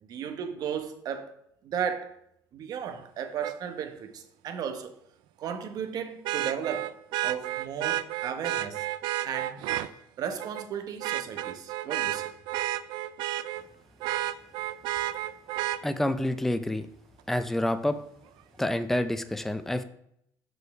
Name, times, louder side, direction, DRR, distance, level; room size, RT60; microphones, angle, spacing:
voice 1, 0.0-1.3 1.6-2.1 2.5-4.9 5.4-6.9 7.2-8.9 9.2-9.6 10.2-12.3, right 8 dB, 55° right, 1.0 m, -35 dB
Vehicle horn car horn honking, 3.4-3.5 6.2-9.9 10.4-10.7 11.0-13.6 14.0-15.8 17.6-17.7, right 14 dB, 80° right, 0.4 m, -31 dB
voice 2, 15.8-16.9 17.3-18.0 18.6-19.8, left 1 dB, 5° left, 0.5 m, -28 dB
6.3 x 5.4 x 4.7 m
cardioid pair, 120°, 8 cm